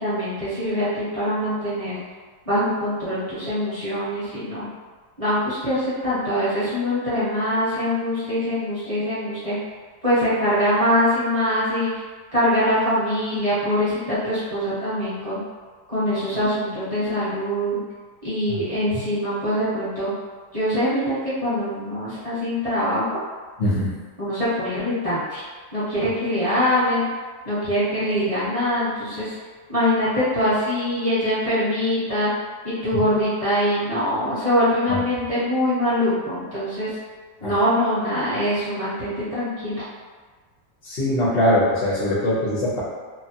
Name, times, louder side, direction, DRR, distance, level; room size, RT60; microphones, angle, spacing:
voice 1, 0.0-2.0 2.4-4.7 5.2-9.6 10.0-11.9 12.3-15.4 15.9-17.8 18.2-20.1 20.5-23.1 24.2-25.4 25.7-27.1 27.4-29.4 29.7-32.3 32.6-36.9 37.4-39.8, equal, 25° right, -13 dB, 0.8 m, -23 dB
voice 2, 23.6-23.9 37.4-37.5 40.8-42.8, left 1 dB, 60° left, -8 dB, 0.6 m, -21 dB
3.1 x 2.0 x 2.7 m, 1.5 s
omnidirectional pair, 1.8 m